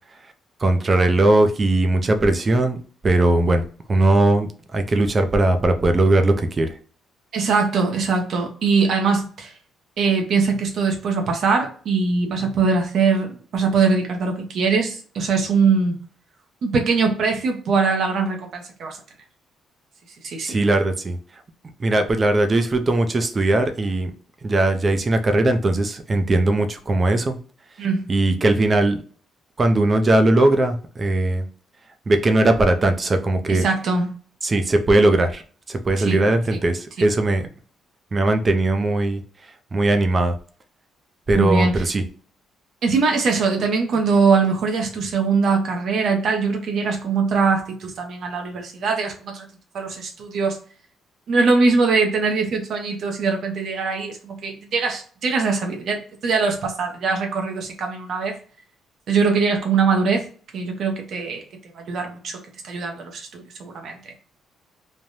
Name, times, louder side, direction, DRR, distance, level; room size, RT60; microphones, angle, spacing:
voice 1, 0.6-3.6 3.9-6.7 20.4-21.2 21.8-24.1 24.4-27.4 28.1-29.0 29.6-31.4 32.1-33.6 34.4-35.4 35.7-37.5 38.1-39.2 39.7-40.4 41.3-42.0, right 2 dB, 35° right, 7 dB, 0.6 m, -19 dB
voice 2, 7.3-9.5 10.0-16.0 16.6-19.0 20.2-20.6 27.8-28.1 33.5-34.2 36.0-36.2 36.5-36.6 41.3-41.8 42.8-49.4 49.7-50.6 51.3-58.4 59.1-60.2 60.5-61.4 61.7-62.4 62.6-64.1, right 4 dB, 65° right, 3 dB, 0.7 m, -22 dB
3.3 x 2.2 x 2.6 m, 0.42 s
cardioid pair, 90°, 0 cm